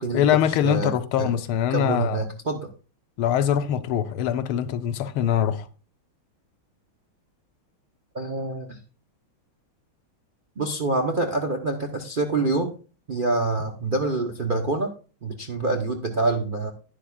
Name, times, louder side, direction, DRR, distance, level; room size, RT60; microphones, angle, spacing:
voice 1, 0.1-2.3 3.2-5.7, left 10 dB, 90° left, 1.6 m, -23 dB
voice 2, 1.7-2.7 8.1-8.8 10.6-12.7 13.1-14.9 15.2-16.7, right 3 dB, 50° right, 0.6 m, -26 dB
11.5 x 10.0 x 2.4 m
omnidirectional pair, 2.3 m